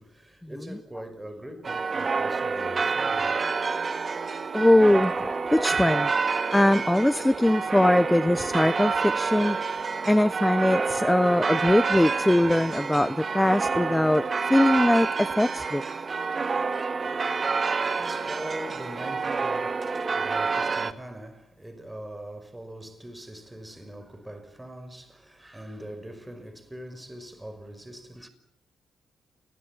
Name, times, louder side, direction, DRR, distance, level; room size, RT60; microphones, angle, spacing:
voice 1, 0.0-3.4 17.0-28.3, right 1 dB, 15° right, 5.8 m, -42 dB
sound 1, 1.6-20.9, right 4 dB, 45° right, 2.1 m, -28 dB
voice 2, 4.5-6.1 6.5-15.8, left 1 dB, 10° left, 1.0 m, -22 dB
29.0 x 22.0 x 7.4 m
hypercardioid pair, 45°, 0 cm